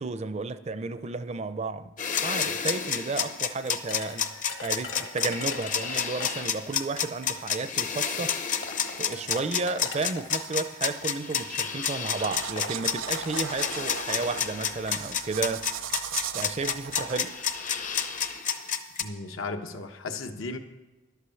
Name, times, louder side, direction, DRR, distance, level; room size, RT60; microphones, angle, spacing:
voice 1, 0.0-4.3 4.6-8.5 9.0-15.7 16.3-17.4, right 3 dB, 30° right, 0.5 m, -32 dB
sound 1, 2.0-19.0, left 7 dB, 40° left, 0.7 m, -29 dB
sound 2, 3.9-6.6 7.7-7.8 8.4-10.5 11.4-11.6 11.9-12.0 12.3-14.4, left 3 dB, 65° left, 1.3 m, -41 dB
sound 3, 12.2-18.4, right 7 dB, 70° right, 0.7 m, -38 dB
voice 2, 19.0-20.6, left 3 dB, 80° left, 1.2 m, -35 dB
11.5 x 8.2 x 7.0 m
head